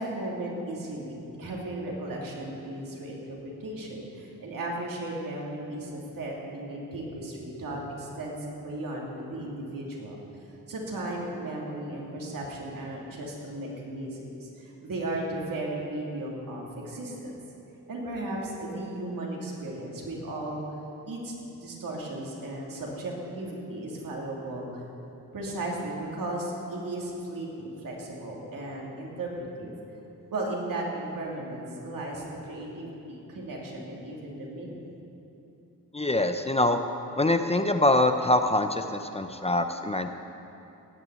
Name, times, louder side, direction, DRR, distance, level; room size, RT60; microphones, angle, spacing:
voice 1, 0.0-10.2 10.7-17.4 17.9-20.6 21.1-21.3 21.6-24.8 25.3-29.7 30.3-34.8, right 1 dB, 70° right, -3 dB, 2.9 m, -35 dB
voice 2, 35.9-36.8 37.2-40.1, left 2 dB, 20° left, 7 dB, 0.5 m, -24 dB
16.5 x 6.1 x 9.1 m, 2.9 s
wide cardioid pair, 110°, 34 cm